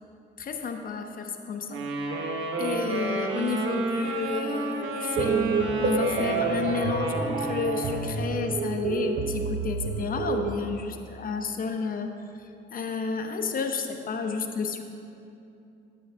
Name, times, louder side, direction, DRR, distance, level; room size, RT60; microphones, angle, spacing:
voice 1, 0.4-1.8 2.6-5.5 5.8-14.9, left 5 dB, 45° left, 5 dB, 0.8 m, -31 dB
Wind instrument woodwind instrument, 1.7-8.2, right 3 dB, 80° right, 1.1 m, -30 dB
sound 1, 5.2-10.5, right 5 dB, 55° right, 0.6 m, -29 dB
10.0 x 8.3 x 3.5 m, 2.7 s
cardioid pair, 90°, 20 cm